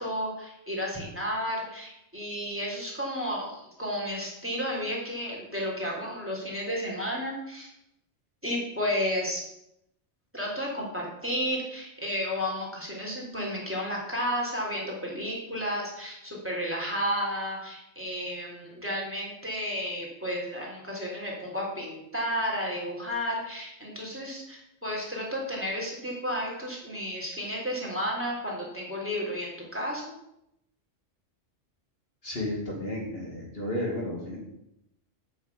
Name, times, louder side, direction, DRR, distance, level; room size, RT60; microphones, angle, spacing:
voice 1, 0.0-7.7 8.4-9.4 10.3-30.1, equal, 10° right, -3 dB, 3.5 m, -32 dB
voice 2, 32.2-34.4, left 1 dB, 50° left, -2 dB, 2.7 m, -32 dB
9.0 x 6.5 x 8.4 m, 0.81 s
omnidirectional pair, 1.3 m